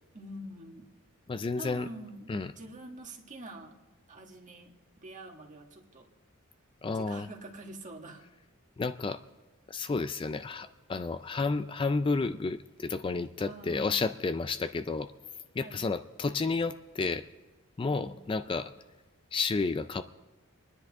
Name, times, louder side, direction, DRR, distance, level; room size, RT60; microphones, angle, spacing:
voice 1, 0.1-0.9 1.6-2.3 2.6-3.7 4.1-6.1 6.9-8.2 13.4-14.3 15.6-15.8 17.8-18.7, right 1 dB, 40° right, 2 dB, 1.7 m, -46 dB
voice 2, 1.3-1.9 2.3-2.5 6.8-7.3 8.8-9.2 9.7-15.1 15.6-17.3 17.8-18.7 19.3-20.0, left 4 dB, 25° left, 11 dB, 0.3 m, -31 dB
29.0 x 10.0 x 3.6 m, 1.3 s
head